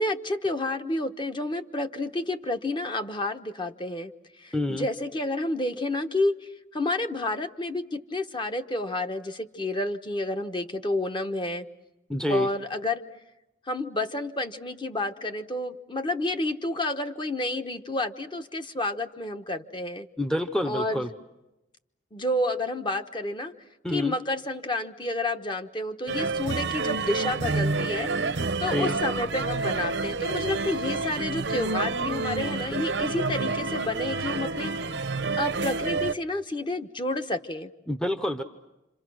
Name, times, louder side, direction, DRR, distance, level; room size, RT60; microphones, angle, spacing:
voice 1, 0.0-4.1 4.4-11.7 12.3-13.0 13.7-20.1 20.6-21.1 22.1-23.5 23.9-28.1 28.6-34.9 35.4-37.7, left 2 dB, 25° left, 7 dB, 1.1 m, -30 dB
voice 2, 4.5-4.9 12.1-12.5 20.2-21.1 23.8-24.2 28.7-28.9 37.9-38.4, left 1 dB, 5° left, 8 dB, 0.8 m, -27 dB
sound 1, 26.1-36.1, right 3 dB, 85° right, 0.9 m, -29 dB
28.5 x 27.0 x 6.3 m, 0.97 s
head